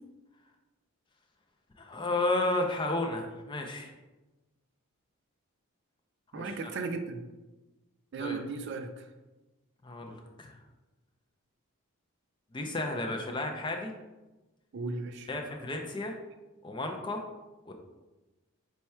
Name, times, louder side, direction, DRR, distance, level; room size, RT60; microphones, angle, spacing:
voice 1, 1.8-3.9 6.3-6.7 8.2-8.4 9.8-10.6 12.5-13.9 15.3-16.1 16.6-17.2 17.7-17.8, left 2 dB, 20° left, 3 dB, 0.3 m, -32 dB
voice 2, 6.3-7.2 8.1-9.0 14.7-15.3, right 4 dB, 50° right, 7 dB, 0.3 m, -36 dB
4.3 x 2.3 x 4.2 m, 1.1 s
head